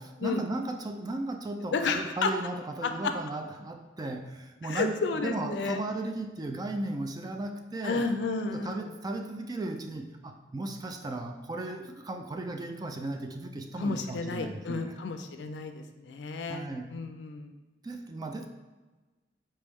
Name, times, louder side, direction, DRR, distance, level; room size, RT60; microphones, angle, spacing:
voice 1, 0.0-8.1 8.5-14.9 16.5-17.0 17.8-18.5, right 2 dB, 20° right, 5 dB, 0.3 m, -36 dB
voice 2, 1.7-2.3 2.8-3.1 4.6-5.8 7.8-8.8 13.8-17.5, left 4 dB, 75° left, 7 dB, 0.4 m, -31 dB
4.4 x 3.1 x 3.4 m, 1.2 s
head